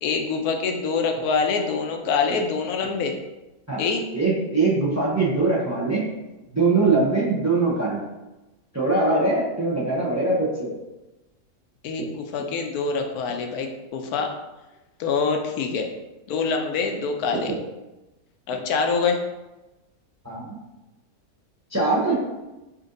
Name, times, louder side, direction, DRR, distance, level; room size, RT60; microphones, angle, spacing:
voice 1, 0.0-3.1 3.8-4.0 11.8-14.3 15.0-15.9 16.3-17.5 18.5-19.2, left 5 dB, 85° left, 3 dB, 1.1 m, -25 dB
voice 2, 4.1-6.0 6.5-8.0 8.7-10.7 20.2-20.6 21.7-22.1, right 3 dB, 20° right, -5 dB, 0.4 m, -22 dB
4.2 x 2.6 x 3.8 m, 1.0 s
omnidirectional pair, 1.6 m